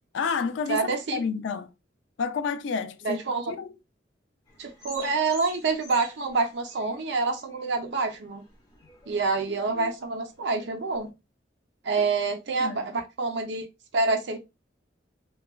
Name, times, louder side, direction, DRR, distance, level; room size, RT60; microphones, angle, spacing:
voice 1, 0.1-1.7 2.2-3.2 3.5-3.7 9.7-9.9 12.0-12.1 12.6-12.9, left 5 dB, 70° left, 0.3 m, -30 dB
voice 2, 0.7-1.2 3.0-3.5 4.6-8.4 9.1-11.1 11.8-13.7 13.9-14.4, right 3 dB, 65° right, 0.5 m, -27 dB
sound 1, 4.5-11.1, right 1 dB, 20° left, 0.9 m, -49 dB
2.9 x 2.2 x 2.2 m
head